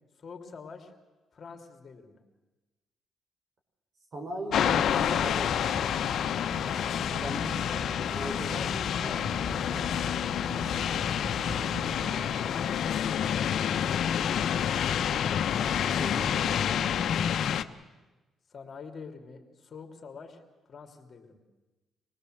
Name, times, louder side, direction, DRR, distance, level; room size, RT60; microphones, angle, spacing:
voice 1, 0.2-0.9 1.3-2.2 7.6-8.1 8.5-10.1 14.0-14.8 18.5-21.4, left 5 dB, 45° left, 4 dB, 3.0 m, -46 dB
voice 2, 4.1-5.7 7.1-9.3 12.0-13.3 15.9-16.8, right 2 dB, 55° right, 3 dB, 5.4 m, -40 dB
sound 1, 4.5-17.6, left 9 dB, 65° left, 0.9 m, -28 dB
sound 2, 4.5-12.1, right 2 dB, 30° right, 2.4 m, -43 dB
25.5 x 19.0 x 7.9 m, 1.2 s
cardioid pair, 90°, 0 cm